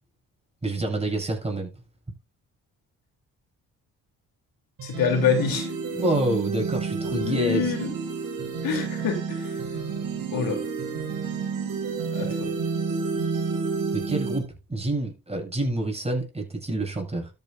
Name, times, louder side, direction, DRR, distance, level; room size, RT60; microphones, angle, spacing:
voice 1, 0.6-1.7 5.9-7.7 13.9-17.3, right 1 dB, 15° right, 7.5 m, -27 dB
voice 2, 4.8-5.7 7.1-7.9 8.6-9.6 10.3-10.6 12.1-12.5, left 6 dB, 75° left, 3.5 m, -26 dB
sound 1, 4.8-14.4, right 5 dB, 70° right, 3.9 m, -30 dB
13.0 x 8.8 x 2.7 m
supercardioid pair, 60°, 36 cm